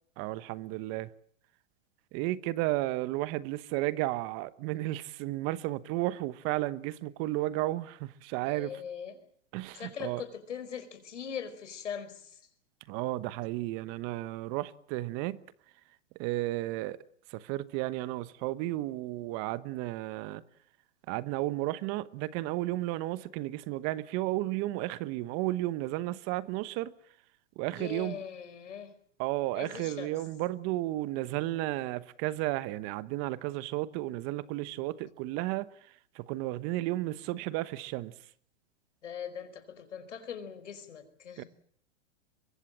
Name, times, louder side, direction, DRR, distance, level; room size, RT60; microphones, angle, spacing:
voice 1, 0.2-1.1 2.1-8.7 9.5-10.2 12.9-15.4 16.2-17.0 17.3-20.4 21.1-26.9 27.6-28.2 29.2-38.1 41.4-41.5, right 17 dB, 40° right, 1.1 m, -33 dB
voice 2, 8.4-9.2 9.7-12.4 27.7-28.9 29.5-30.1 39.0-41.5, left 7 dB, 85° left, 4.8 m, -41 dB
23.5 x 23.5 x 7.4 m
hypercardioid pair, 120°, 35 cm